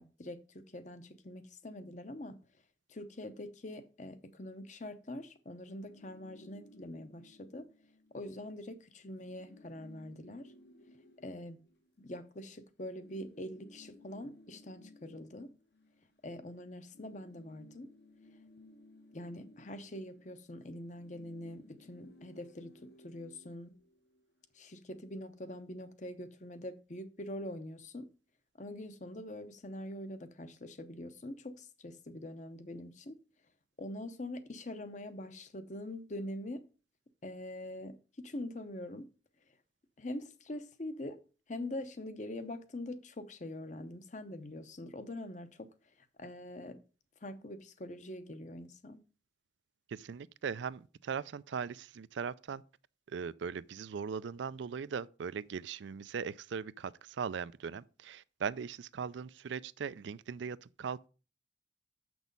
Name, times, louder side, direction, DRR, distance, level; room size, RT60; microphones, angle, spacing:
voice 1, 0.0-2.4 2.9-7.7 8.1-10.5 11.2-11.6 12.0-15.5 16.2-17.9 19.1-23.7 24.5-28.1 28.6-33.2 33.8-36.7 37.2-39.1 40.0-41.2 41.5-46.8 47.2-49.0, left 1 dB, 40° left, 0.8 m, -44 dB
sound 1, 5.7-8.3 8.6-8.7 9.0-12.4 12.9-16.5 16.8-24.4, left 1 dB, 55° left, 1.0 m, -59 dB
voice 2, 49.9-52.6 53.1-61.1, right 6 dB, 75° right, 0.4 m, -39 dB
7.2 x 6.1 x 5.3 m
head